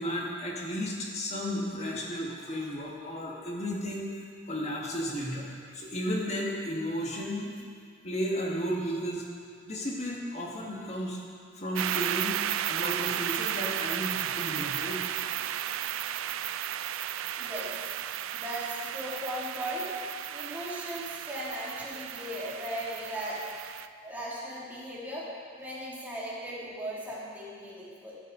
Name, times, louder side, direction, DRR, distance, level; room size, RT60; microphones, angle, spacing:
voice 1, 0.0-4.2 4.5-7.5 8.0-9.2 9.7-11.2 11.6-12.4 12.7-15.6 16.1-16.2 16.5-16.8 22.4-22.5, equal, 35° left, -2 dB, 1.7 m, -34 dB
sound 1, 11.8-23.9, right 11 dB, 75° right, 0.3 m, -34 dB
voice 2, 17.4-17.7 18.3-19.9 20.3-23.5 24.0-25.2 25.6-28.2, equal, 10° right, -8 dB, 2.7 m, -37 dB
13.0 x 11.0 x 3.9 m, 2.1 s
head